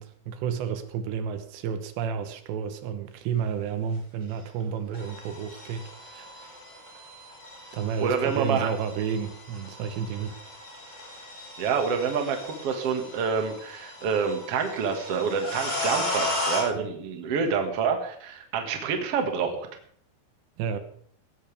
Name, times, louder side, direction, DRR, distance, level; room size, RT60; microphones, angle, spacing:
voice 1, 0.0-6.6 7.7-10.5 16.7-16.9 20.6-20.8, right 7 dB, 80° right, 9 dB, 3.3 m, -31 dB
sound 1, 4.6-4.7 4.9-16.6, left 2 dB, 10° left, 3.9 m, -36 dB
voice 2, 8.0-8.7 11.6-19.7, right 6 dB, 50° right, 4 dB, 2.0 m, -27 dB
17.0 x 13.5 x 3.4 m, 0.63 s
omnidirectional pair, 5.0 m